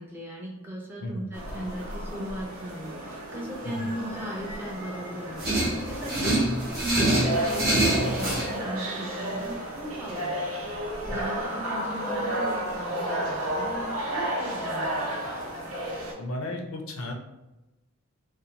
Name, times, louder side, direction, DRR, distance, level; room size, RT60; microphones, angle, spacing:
voice 1, 0.0-5.4 5.9-6.5 6.8-10.4 11.0-15.1, equal, 10° right, -3 dB, 0.4 m, -37 dB
sound 1, 1.3-16.1, right 1 dB, 85° right, 0.7 m, -32 dB
sound 2, 5.4-8.5, right 1 dB, 45° right, 0.9 m, -25 dB
voice 2, 16.2-17.1, left 1 dB, 85° left, 1 dB, 0.5 m, -34 dB
2.6 x 2.1 x 2.8 m, 0.99 s
head